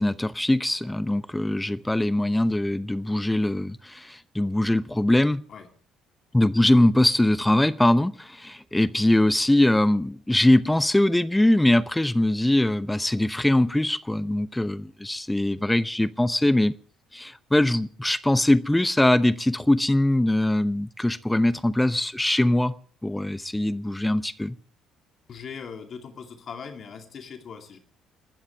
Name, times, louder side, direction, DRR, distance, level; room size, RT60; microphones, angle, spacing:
voice 1, 0.0-5.4 6.3-16.7 17.1-22.7 23.0-24.6, left 1 dB, 10° left, 0.8 m, -22 dB
voice 2, 25.3-27.8, left 6 dB, 50° left, 2.7 m, -40 dB
30.0 x 13.0 x 3.4 m
hypercardioid pair, 55°, 0 cm